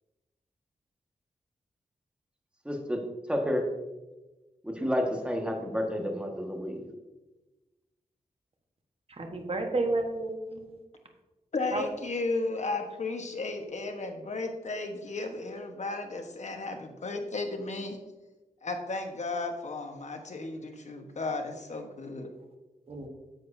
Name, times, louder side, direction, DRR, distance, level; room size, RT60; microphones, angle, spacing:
voice 1, 2.6-3.7 4.6-6.9, equal, 5° right, 1 dB, 1.6 m, -30 dB
voice 2, 9.1-10.8 11.7-11.8 22.9-23.1, right 2 dB, 45° right, 3 dB, 1.4 m, -31 dB
voice 3, 11.5-18.0 18.6-22.3, left 3 dB, 55° left, 4 dB, 1.3 m, -34 dB
10.0 x 7.6 x 2.7 m, 1.1 s
cardioid pair, 75°, 14 cm